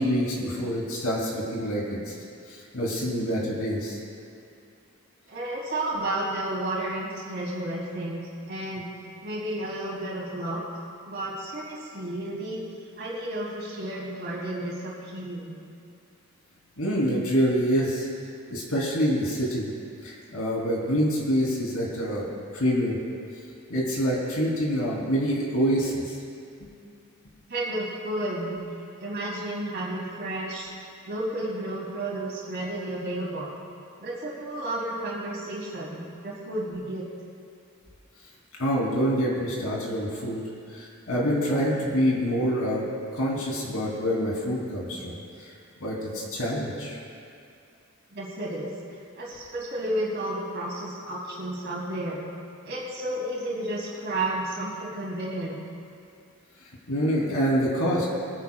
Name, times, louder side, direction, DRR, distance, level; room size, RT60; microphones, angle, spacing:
voice 1, 0.0-2.1 2.5-4.0 16.8-18.1 18.5-19.7 20.0-22.3 22.5-23.0 23.7-26.1 26.6-26.7 38.6-40.4 40.7-42.8 43.1-45.5 45.8-47.0 56.9-58.1, equal, 90° left, -4 dB, 3.3 m, -26 dB
voice 2, 5.3-8.9 9.2-10.6 11.1-12.6 13.0-15.6 27.5-28.6 29.0-30.7 31.1-33.5 34.0-37.1 48.1-52.2 52.6-55.5, right 1 dB, 50° right, -6 dB, 2.9 m, -32 dB
23.5 x 9.9 x 2.4 m, 2.5 s
head